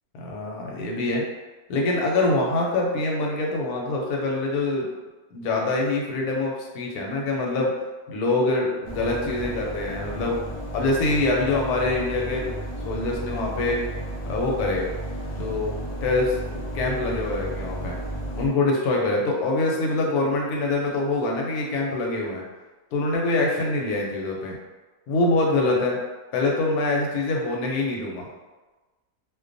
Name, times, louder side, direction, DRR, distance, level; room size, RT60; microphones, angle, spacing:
voice 1, 0.2-1.3 1.7-4.9 5.3-7.7 8.1-10.4 10.7-12.5 12.9-13.8 14.3-14.9 15.4-18.0 18.3-22.4 22.9-24.6 25.1-26.0 26.3-28.3, left 2 dB, 85° left, -1 dB, 1.1 m, -24 dB
sound 1, 8.8-18.5, right 1 dB, 65° left, 0.6 m, -33 dB
2.4 x 2.2 x 2.5 m, 1.2 s
omnidirectional pair, 1.6 m